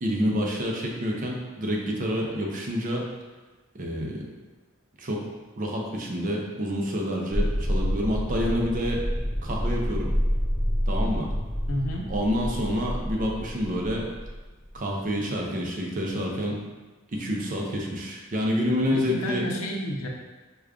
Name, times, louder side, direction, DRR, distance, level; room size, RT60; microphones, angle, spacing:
voice 1, 0.0-3.1 3.7-4.2 5.0-5.3 5.6-9.0 9.4-10.1 10.9-11.3 12.1-14.1 14.7-16.6 17.1-19.4, equal, 40° right, -1 dB, 0.5 m, -28 dB
sound 1, 7.3-14.7, equal, 15° left, 0.6 m, -28 dB
voice 2, 11.7-12.1 18.9-20.1, equal, 75° left, 0 dB, 0.6 m, -30 dB
4.8 x 2.2 x 2.4 m, 1.2 s
head